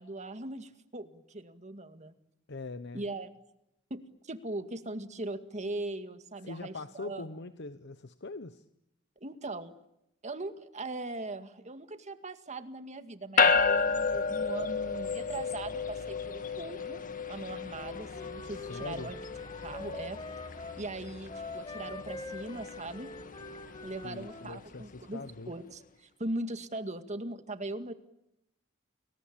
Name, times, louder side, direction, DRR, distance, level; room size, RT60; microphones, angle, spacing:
voice 1, 0.0-2.1 2.9-3.4 3.9-7.3 9.2-9.7 10.2-17.0 17.3-19.2 19.6-20.2 20.8-23.1 23.8-27.9, right 2 dB, 35° right, 9 dB, 2.0 m, -40 dB
voice 2, 2.5-3.0 6.4-8.6 18.6-19.1 24.0-25.5, left 3 dB, 60° left, 12 dB, 1.0 m, -42 dB
sound 1, 13.4-25.0, left 5 dB, 45° left, 1.8 m, -32 dB
Wind instrument woodwind instrument, 17.7-20.8 21.3-24.5, left 2 dB, 25° left, 3.1 m, -44 dB
30.0 x 22.0 x 8.7 m, 0.85 s
head